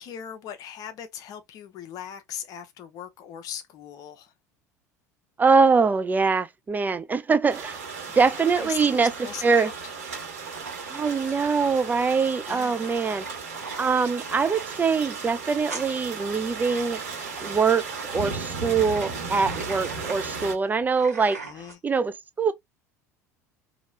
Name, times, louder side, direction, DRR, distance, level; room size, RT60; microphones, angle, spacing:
voice 1, 0.0-4.3 8.4-9.9 12.5-12.9 21.4-21.8, left 9 dB, 50° left, 0.8 m, -39 dB
voice 2, 5.4-7.8 8.1-9.1 9.4-9.7 10.9-13.2 13.8-17.0 17.4-21.4 21.8-22.5, right 5 dB, 20° right, 0.4 m, -23 dB
sound 1, 7.5-20.6, right 4 dB, 70° right, 1.6 m, -35 dB
sound 2, 10.5-21.8, right 3 dB, 85° right, 1.1 m, -42 dB
2.9 x 2.8 x 2.8 m
figure-of-eight pair, 70°, 8 cm